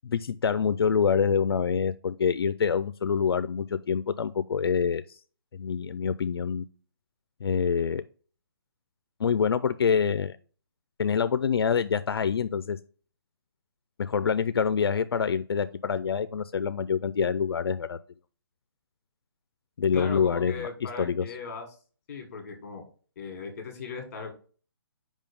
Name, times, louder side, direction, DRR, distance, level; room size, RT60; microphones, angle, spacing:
voice 1, 0.0-5.2 5.5-6.6 7.4-8.0 9.2-10.4 11.0-12.8 14.0-18.0 19.8-20.7 21.0-21.2, left 6 dB, 80° left, 13 dB, 0.4 m, -26 dB
voice 2, 19.9-21.7 22.1-22.8 23.2-24.3, left 4 dB, 40° left, 4 dB, 1.7 m, -38 dB
5.0 x 3.7 x 5.2 m, 0.39 s
hypercardioid pair, 165°, 13 cm